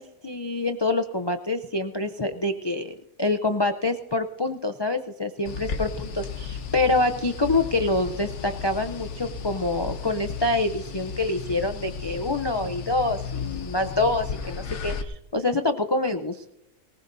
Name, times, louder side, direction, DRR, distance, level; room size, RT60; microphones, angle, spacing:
voice 1, 0.0-16.5, left 2 dB, 45° left, 7 dB, 0.3 m, -26 dB
sound 1, 5.4-15.0, left 6 dB, 60° left, 1.2 m, -34 dB
19.5 x 19.0 x 2.6 m, 0.89 s
omnidirectional pair, 1.4 m